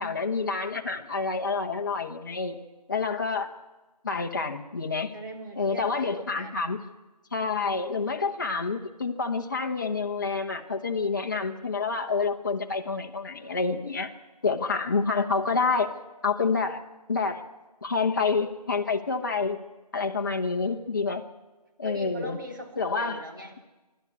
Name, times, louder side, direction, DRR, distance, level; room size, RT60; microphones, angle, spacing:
voice 1, 0.0-2.6 2.9-3.5 4.0-5.1 5.6-6.8 7.3-14.1 14.4-15.9 16.2-16.8 17.1-17.4 17.8-19.6 19.9-21.2 21.8-22.4 22.8-23.2, left 4 dB, 30° left, 4 dB, 1.1 m, -28 dB
voice 2, 5.1-6.8 21.8-23.6, right 1 dB, 30° right, 2 dB, 2.2 m, -40 dB
25.5 x 12.5 x 8.4 m, 1.2 s
figure-of-eight pair, 170°, 21 cm